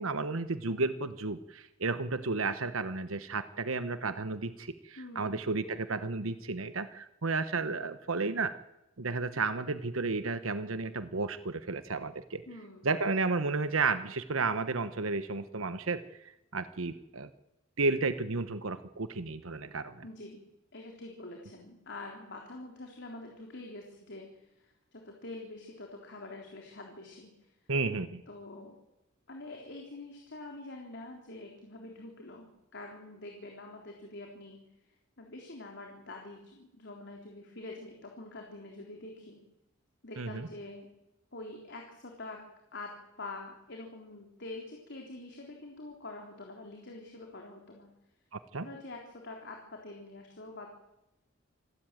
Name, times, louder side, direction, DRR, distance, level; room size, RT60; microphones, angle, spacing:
voice 1, 0.0-8.6 9.0-12.4 12.8-17.3 17.8-20.0 27.7-28.2 40.2-40.5 48.3-48.7, right 3 dB, 75° right, 11 dB, 1.2 m, -32 dB
voice 2, 5.0-5.4 12.5-13.0 20.0-20.4 20.7-27.5 28.3-28.8 29.3-34.6 35.2-39.4 40.0-40.9 41.3-42.4 42.7-47.9 48.6-50.7, left 2 dB, 60° left, 1 dB, 3.8 m, -46 dB
27.0 x 13.0 x 9.2 m, 0.90 s
head